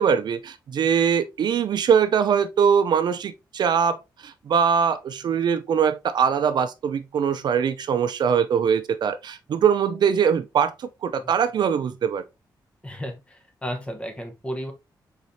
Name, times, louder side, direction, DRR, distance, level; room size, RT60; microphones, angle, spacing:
voice 1, 0.0-12.2, right 7 dB, 65° right, 0.5 m, -22 dB
voice 2, 12.8-14.7, equal, 15° left, 1.1 m, -33 dB
4.9 x 4.0 x 2.7 m
wide cardioid pair, 145°, 8 cm